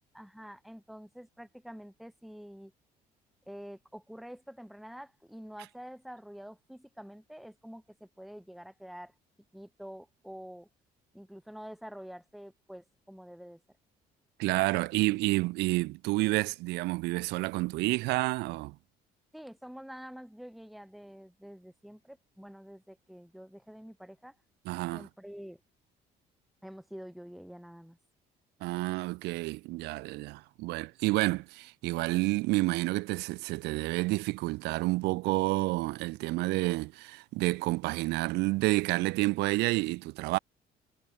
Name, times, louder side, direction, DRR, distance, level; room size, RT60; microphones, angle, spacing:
voice 1, 0.1-2.7 3.5-9.1 9.5-10.7 11.1-13.6 19.3-24.4 24.9-25.6 26.6-28.0, equal, ahead, 1.5 m, -47 dB
voice 2, 14.4-18.8 24.7-25.1 28.6-40.4, right 22 dB, 85° right, 0.4 m, -29 dB
cardioid pair, 110°, 17 cm